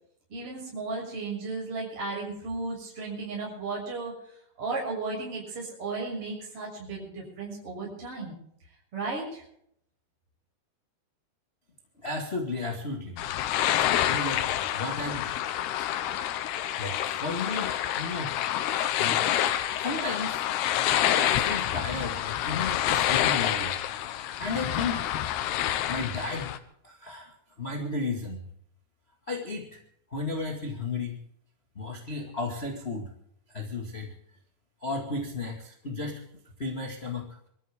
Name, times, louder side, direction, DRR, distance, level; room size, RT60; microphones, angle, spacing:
voice 1, 0.3-4.1 4.6-8.3 8.9-9.4, right 3 dB, 35° right, -3 dB, 7.5 m, -34 dB
voice 2, 12.0-13.3 13.8-15.3 15.8-16.5 16.8-18.4 19.0-19.2 19.8-20.4 20.7-23.7 24.4-25.0 25.9-26.5 26.8-28.5 29.3-29.8 30.1-31.2 31.7-33.1 33.5-34.1 34.8-36.2 36.6-37.3, left 3 dB, 25° left, 1 dB, 1.4 m, -34 dB
sound 1, 13.2-26.6, left 11 dB, 90° left, 3.0 m, -28 dB
25.0 x 14.0 x 3.7 m, 0.69 s
omnidirectional pair, 4.5 m